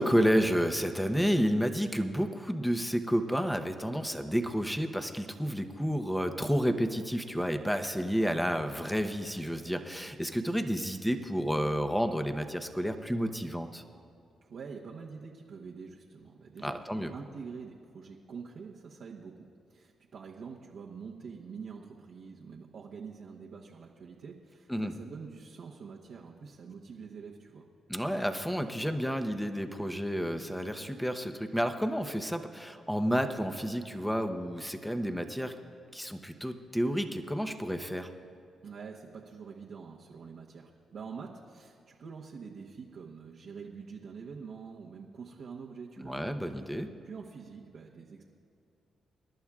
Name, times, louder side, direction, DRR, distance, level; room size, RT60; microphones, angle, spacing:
voice 1, 0.0-13.8 16.6-17.1 24.7-24.9 27.9-35.5 35.9-38.1 46.0-46.9, equal, 5° left, 7 dB, 0.9 m, -30 dB
voice 2, 14.4-16.8 17.1-27.7 38.6-46.2 47.0-48.2, right 5 dB, 65° right, -3 dB, 1.0 m, -46 dB
26.5 x 11.5 x 2.4 m, 2.5 s
cardioid pair, 80°, 0 cm